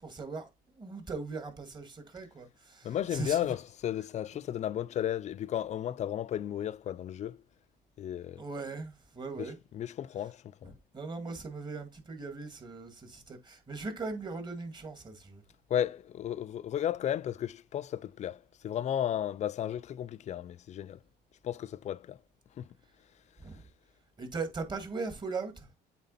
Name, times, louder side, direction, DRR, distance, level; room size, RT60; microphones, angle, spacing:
voice 1, 0.0-3.4 8.4-9.6 10.6-15.4 23.4-23.6 24.2-25.7, right 4 dB, 25° right, 2.0 m, -39 dB
voice 2, 2.8-7.4 8.0-8.4 9.4-9.5 9.7-10.7 15.7-21.0 21.4-22.2 22.6-22.7, left 10 dB, 45° left, 0.4 m, -34 dB
8.2 x 3.8 x 4.1 m
cardioid pair, 110°, 17 cm